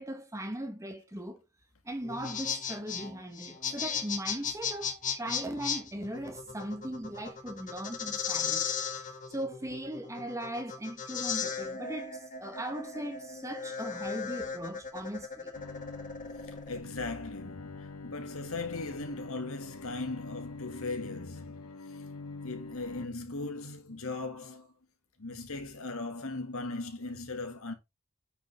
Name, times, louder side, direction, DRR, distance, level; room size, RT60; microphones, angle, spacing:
voice 1, 0.0-1.4 1.8-8.7 9.0-15.5, right 1 dB, 15° right, 1.4 m, -39 dB
sound 1, 2.0-16.8, left 6 dB, 35° left, 1.5 m, -36 dB
Bowed string instrument, 15.6-23.1, left 3 dB, 85° left, 0.9 m, -45 dB
voice 2, 16.4-22.0 22.4-24.7 25.2-27.7, left 3 dB, 65° left, 2.2 m, -38 dB
9.3 x 5.3 x 3.5 m
head